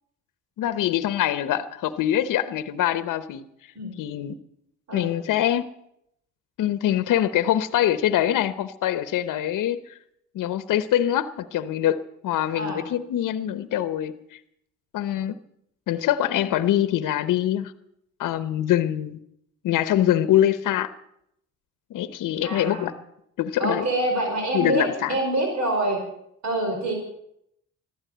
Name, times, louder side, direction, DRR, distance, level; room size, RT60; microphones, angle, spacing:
voice 1, 0.6-3.4 4.0-4.4 4.9-5.6 6.6-10.0 10.3-14.4 14.9-15.3 15.9-17.7 18.2-19.2 19.6-20.9 21.9-22.9 23.4-23.9 24.5-25.2, left 11 dB, 85° left, 13 dB, 0.9 m, -24 dB
voice 2, 22.4-22.9 23.6-26.0 26.4-27.0, right 1 dB, 60° right, 2 dB, 5.2 m, -26 dB
14.5 x 12.5 x 7.9 m, 0.75 s
cardioid pair, 75°, 31 cm